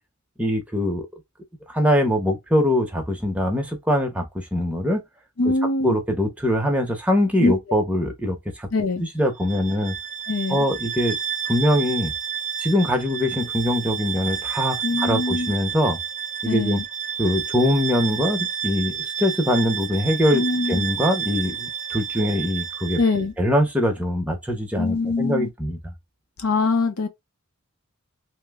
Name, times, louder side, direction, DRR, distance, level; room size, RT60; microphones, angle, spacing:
voice 1, 0.4-1.0 1.7-5.0 5.8-8.7 9.0-10.0 10.5-11.2 11.5-12.1 12.6-16.0 16.4-16.8 17.2-20.4 20.7-23.0 23.4-25.8, left 1 dB, 5° right, 0.7 m, -22 dB
voice 2, 5.4-6.0 7.4-7.6 8.7-9.0 10.3-10.7 14.8-15.5 16.4-16.8 20.3-20.9 23.0-23.3 24.8-25.5 26.4-27.1, left 3 dB, 80° left, 0.6 m, -23 dB
Bowed string instrument, 9.4-23.2, right 8 dB, 35° right, 0.4 m, -30 dB
3.0 x 2.0 x 3.4 m
head